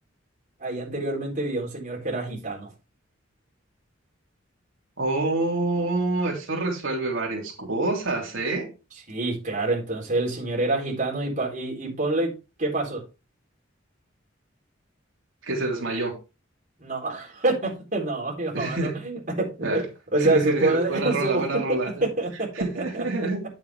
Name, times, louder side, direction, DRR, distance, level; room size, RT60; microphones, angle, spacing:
voice 1, 0.6-2.7 9.1-12.3 12.6-13.0 16.8-19.8 20.1-21.4 21.7-22.5 22.7-23.0, right 2 dB, 40° right, 4.0 m, -26 dB
voice 2, 5.0-8.7 15.4-16.2 18.5-19.0 19.6-19.8 20.2-21.9 22.5-23.4, right 2 dB, 85° right, 3.2 m, -27 dB
9.5 x 7.3 x 3.5 m
head